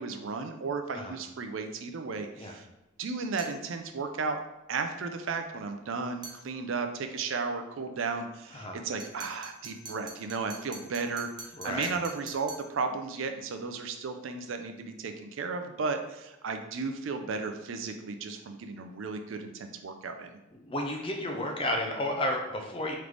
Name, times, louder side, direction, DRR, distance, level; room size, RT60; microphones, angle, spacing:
voice 1, 0.0-2.7 3.0-4.4 4.7-11.3 11.6-20.3, right 4 dB, 65° right, 6 dB, 0.4 m, -34 dB
sound 1, 3.4-3.6 6.2-6.4 9.0-12.7, right 3 dB, 20° right, 0.6 m, -45 dB
voice 2, 11.5-11.9 20.6-23.0, left 1 dB, 25° left, 2 dB, 0.6 m, -32 dB
3.8 x 3.2 x 3.2 m, 0.99 s
head